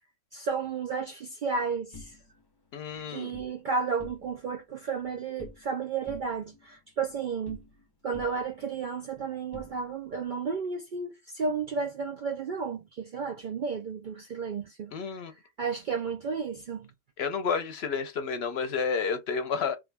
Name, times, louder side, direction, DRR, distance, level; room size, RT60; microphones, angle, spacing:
voice 1, 0.3-2.2 3.1-7.7 8.0-14.9 15.6-16.9, right 5 dB, 65° right, 0.5 m, -32 dB
sound 1, 1.9-3.5 3.9-4.6 4.8-5.8 6.1-7.9 8.1-10.2, left 3 dB, 25° left, 0.5 m, -50 dB
voice 2, 2.7-3.3 14.9-15.3 17.2-19.8, left 5 dB, 60° left, 0.8 m, -30 dB
3.4 x 2.4 x 3.3 m
omnidirectional pair, 1.3 m